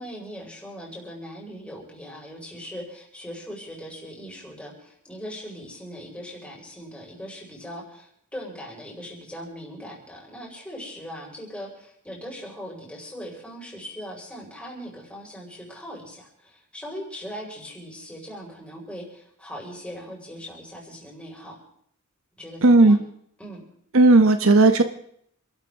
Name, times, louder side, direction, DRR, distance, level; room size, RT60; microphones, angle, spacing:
voice 1, 0.0-21.6 22.4-23.0 23.4-23.6, equal, 5° left, -3 dB, 5.4 m, -40 dB
voice 2, 22.6-23.0 23.9-24.8, right 2 dB, 65° right, 8 dB, 1.0 m, -14 dB
28.0 x 13.0 x 3.7 m, 0.67 s
head